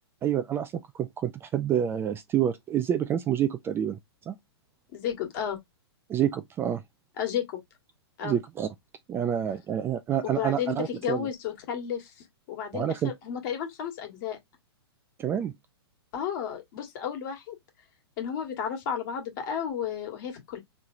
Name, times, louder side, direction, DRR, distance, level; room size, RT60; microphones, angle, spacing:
voice 1, 0.2-4.0 4.3-4.4 6.1-6.8 8.2-8.7 9.1-11.3 12.7-13.1 15.2-15.5, right 10 dB, 15° right, 0.3 m, -28 dB
voice 2, 4.9-5.6 7.2-7.6 8.2-8.4 10.2-12.1 12.5-14.4 16.1-17.6 18.2-20.6, left 8 dB, 45° left, 1.5 m, -32 dB
4.4 x 3.2 x 2.5 m
hypercardioid pair, 120°, 14 cm